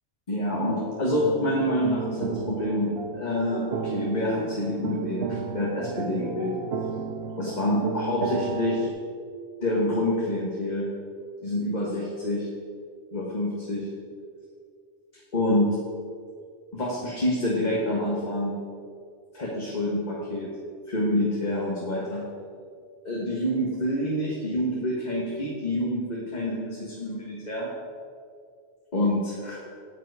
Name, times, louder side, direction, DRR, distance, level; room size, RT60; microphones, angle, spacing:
voice 1, 0.3-6.6 7.4-8.9 9.6-10.9 11.4-12.5 13.1-13.9 15.3-15.7 16.7-18.6 19.3-20.5 20.9-22.2 23.0-27.7 28.9-29.6, left 1 dB, 40° left, -4 dB, 1.5 m, -27 dB
sound 1, 1.2-8.9, right 5 dB, 75° right, 0.9 m, -33 dB
9.2 x 9.0 x 4.8 m, 2.2 s
omnidirectional pair, 1.1 m